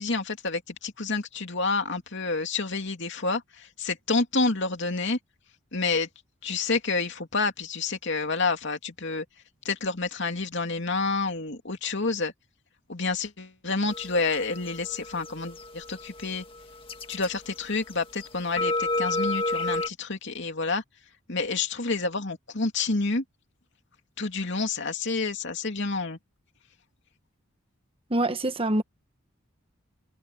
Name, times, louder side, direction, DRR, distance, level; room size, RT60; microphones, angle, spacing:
voice 1, 0.0-5.2 5.7-6.1 6.4-9.2 9.6-12.3 12.9-16.4 17.1-20.8 21.3-23.2 24.2-26.2, left 3 dB, 60° left, 2.9 m, -29 dB
sound 1, 13.9-17.9 18.2-19.9, left 2 dB, 25° left, 1.8 m, -31 dB
voice 2, 28.1-28.8, right 1 dB, 25° right, 1.3 m, -25 dB
head